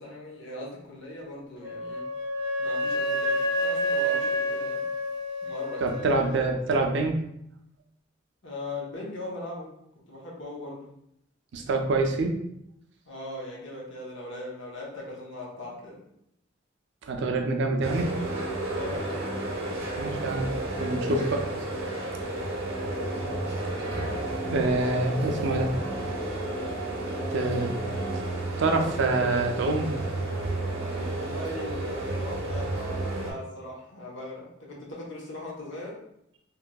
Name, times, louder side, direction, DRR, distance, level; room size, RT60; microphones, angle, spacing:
voice 1, 0.0-2.1 2.6-4.8 5.4-6.2 8.4-9.7 10.1-10.9 13.1-16.0 18.7-19.2 23.2-23.6 27.2-27.3 31.1-36.0, left 1 dB, 65° left, -3 dB, 0.8 m, -39 dB
Wind instrument woodwind instrument, 1.6-6.3, equal, 20° left, 1.0 m, -29 dB
voice 2, 5.8-7.2 11.5-12.4 17.1-18.1 20.0-20.5 20.8-21.5 24.4-25.9 27.3-27.7 28.1-28.2 28.6-29.9, right 2 dB, 65° right, 4 dB, 0.4 m, -26 dB
sound 1, 17.8-33.3, right 1 dB, 90° right, 0.7 m, -32 dB
sound 2, 23.0-28.1, right 2 dB, 25° right, 0.7 m, -38 dB
3.0 x 2.6 x 2.2 m, 0.77 s
head